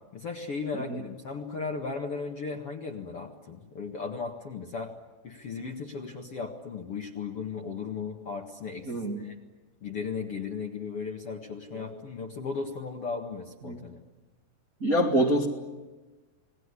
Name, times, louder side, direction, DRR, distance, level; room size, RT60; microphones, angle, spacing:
voice 1, 0.1-4.9 5.2-9.4 9.8-14.0, left 5 dB, 50° left, 2 dB, 2.0 m, -36 dB
voice 2, 8.9-9.2 11.7-12.0 13.7-13.8 14.8-15.5, right 1 dB, 30° right, 0 dB, 1.7 m, -26 dB
29.0 x 20.0 x 9.9 m, 1.2 s
omnidirectional pair, 4.7 m